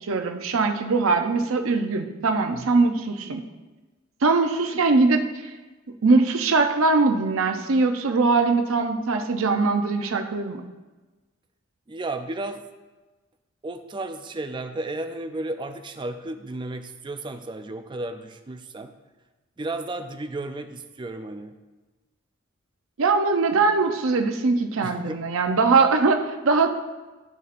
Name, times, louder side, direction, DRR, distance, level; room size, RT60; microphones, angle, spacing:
voice 1, 0.0-3.4 4.2-5.5 6.0-10.6 23.0-26.7, right 3 dB, 85° right, 5 dB, 0.6 m, -21 dB
voice 2, 11.9-12.7 13.6-18.9 19.6-21.5 24.8-25.2, right 2 dB, 25° right, 7 dB, 0.4 m, -33 dB
12.0 x 4.1 x 2.5 m, 1.2 s
head